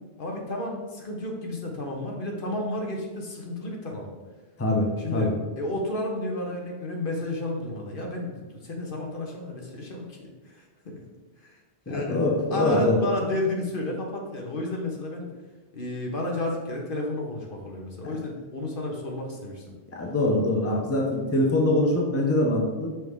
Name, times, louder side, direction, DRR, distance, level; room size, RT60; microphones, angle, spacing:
voice 1, 0.2-4.1 5.0-11.0 11.4-11.6 11.9-12.2 12.5-15.3 15.7-19.8 21.0-21.3, left 1 dB, 60° left, 0 dB, 1.2 m, -32 dB
voice 2, 4.6-5.3 11.9-13.0 18.0-18.1 19.9-22.9, left 1 dB, 15° left, -1 dB, 0.8 m, -24 dB
6.1 x 4.6 x 3.6 m, 1.2 s
omnidirectional pair, 1.0 m